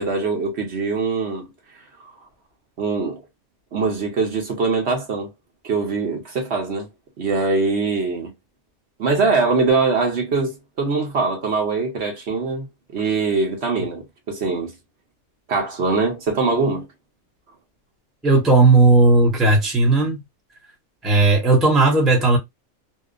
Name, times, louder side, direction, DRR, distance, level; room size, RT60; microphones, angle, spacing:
voice 1, 0.0-1.5 2.8-3.2 3.7-5.3 5.6-6.9 7.2-8.3 9.0-12.7 12.9-14.7 15.5-16.9, right 4 dB, 55° right, 1.0 m, -22 dB
voice 2, 18.2-20.2 21.0-22.4, right 3 dB, ahead, 0.6 m, -15 dB
2.8 x 2.1 x 2.4 m
omnidirectional pair, 1.5 m